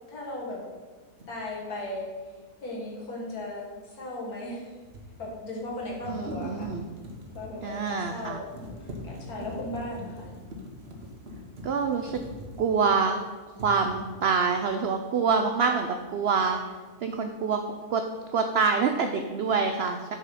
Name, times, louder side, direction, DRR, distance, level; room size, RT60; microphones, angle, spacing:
voice 1, 0.1-0.6 1.3-2.1 2.6-4.7 5.2-6.7 7.3-8.5 8.8-10.3, left 1 dB, 75° left, -3 dB, 2.1 m, -36 dB
sound 1, 1.2-1.3 4.4-13.2 13.5-14.3, left 1 dB, 45° right, 1.2 m, -43 dB
voice 2, 6.1-6.9 7.6-8.4 11.6-12.2 12.6-13.2 13.6-16.6 17.0-17.6 17.9-18.0 18.3-20.1, right 5 dB, 75° right, 6 dB, 0.5 m, -26 dB
6.6 x 4.9 x 5.6 m, 1.4 s
omnidirectional pair, 1.6 m